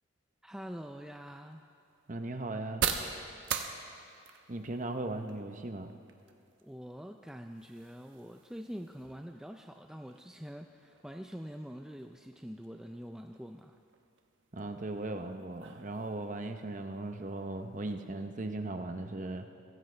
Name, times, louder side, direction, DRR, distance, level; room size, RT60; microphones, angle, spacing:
voice 1, 0.4-1.6 6.6-13.8, equal, 5° right, 4 dB, 0.4 m, -45 dB
sound 1, 0.7-18.3, right 7 dB, 65° right, 1.0 m, -44 dB
voice 2, 2.1-2.8 4.5-5.9 14.5-19.5, right 2 dB, 35° right, 6 dB, 0.8 m, -38 dB
23.0 x 16.0 x 3.3 m, 2.6 s
head